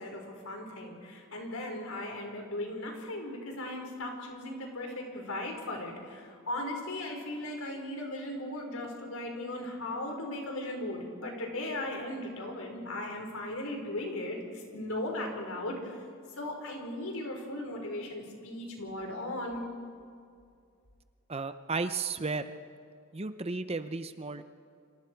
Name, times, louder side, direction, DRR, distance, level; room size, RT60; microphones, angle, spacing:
voice 1, 0.0-15.7 16.4-19.6, left 1 dB, 75° left, 2 dB, 4.7 m, -37 dB
voice 2, 21.3-22.5 23.1-24.4, right 4 dB, 30° right, 10 dB, 0.7 m, -34 dB
30.0 x 25.5 x 4.7 m, 2.3 s
head